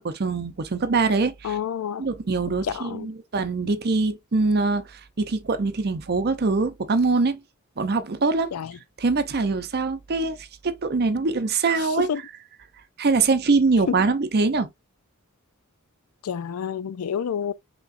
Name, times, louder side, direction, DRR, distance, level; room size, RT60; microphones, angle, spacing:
voice 1, 0.0-1.6 2.0-7.4 7.8-8.5 9.0-12.1 13.0-14.7, right 3 dB, 45° right, 0.6 m, -23 dB
voice 2, 1.4-2.1 2.6-3.1 8.5-8.7 12.0-12.2 13.9-14.0 16.2-17.5, left 7 dB, 80° left, 0.4 m, -28 dB
5.4 x 3.0 x 2.5 m
head